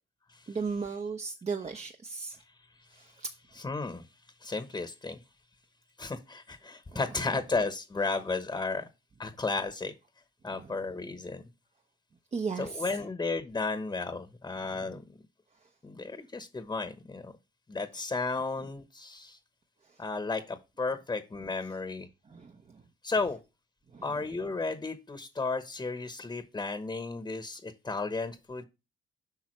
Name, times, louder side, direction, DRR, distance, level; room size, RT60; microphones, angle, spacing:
voice 1, 0.5-2.4 2.9-3.3 6.9-7.0 12.3-12.9 22.3-22.5 23.9-24.2, right 5 dB, 35° right, 0.9 m, -35 dB
voice 2, 3.5-4.1 4.4-5.2 6.0-8.8 9.2-9.9 10.4-11.4 12.6-15.0 15.8-17.3 17.7-19.4 20.0-22.1 23.0-23.4 24.0-28.6, left 3 dB, 20° left, 1.1 m, -33 dB
8.6 x 5.7 x 3.2 m
cardioid pair, 90°, 20 cm